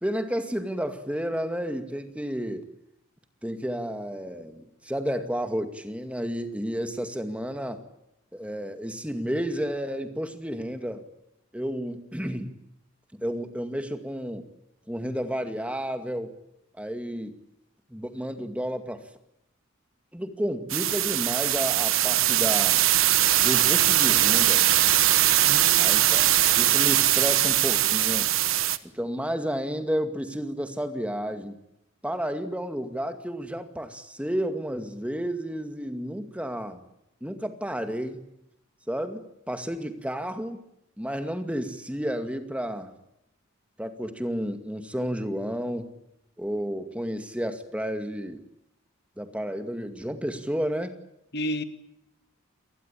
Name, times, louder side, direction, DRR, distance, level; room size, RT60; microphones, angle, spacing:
voice 1, 0.0-2.7 3.4-7.8 8.3-11.1 11.5-12.5 13.1-14.5 14.9-16.4 16.8-17.4 17.9-19.1 20.1-22.8 23.4-24.7 25.8-28.3 28.8-31.6 32.0-36.8 37.2-38.2 38.9-40.6 41.0-42.9 43.8-45.9 46.4-48.4 49.2-51.0, equal, 5° right, 7 dB, 2.2 m, -31 dB
sound 1, 20.7-28.8, right 13 dB, 75° right, 1.2 m, -21 dB
voice 2, 25.4-26.1 51.3-51.6, equal, 50° left, 9 dB, 2.2 m, -32 dB
28.5 x 19.5 x 8.6 m, 0.83 s
head